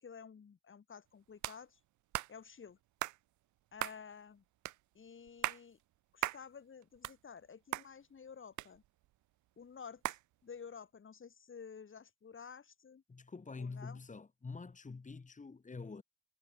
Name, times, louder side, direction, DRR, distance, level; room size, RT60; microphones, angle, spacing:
voice 1, 0.0-1.8 2.3-2.8 3.7-4.4 4.9-5.8 6.1-8.8 9.6-10.2 10.4-13.0 13.6-14.0, left 6 dB, 40° left, 4.3 m, -52 dB
sound 1, 1.4-1.6 2.1-2.3 3.0-3.2 3.8-4.0 4.7-4.8 5.3-5.6 6.2-6.4 6.8-7.5 7.7-7.9 8.6-9.1 10.0-10.2, right 16 dB, 75° right, 0.6 m, -38 dB
voice 2, 13.1-16.0, left 4 dB, 25° left, 2.5 m, -46 dB
cardioid pair, 90°, 30 cm